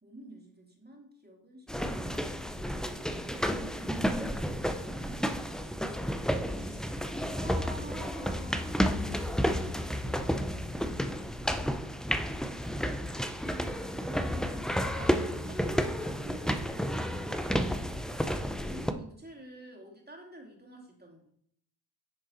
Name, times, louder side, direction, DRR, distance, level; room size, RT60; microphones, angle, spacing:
voice 1, 0.0-2.9 7.3-9.3 14.8-18.1 18.6-21.3, right 1 dB, 20° right, 0 dB, 2.5 m, -50 dB
sound 1, 1.7-18.9, equal, ahead, 0.6 m, -31 dB
voice 2, 6.5-7.5 8.7-11.0, left 2 dB, 60° left, 0 dB, 2.3 m, -48 dB
10.5 x 3.8 x 4.1 m, 0.68 s
supercardioid pair, 45°, 47 cm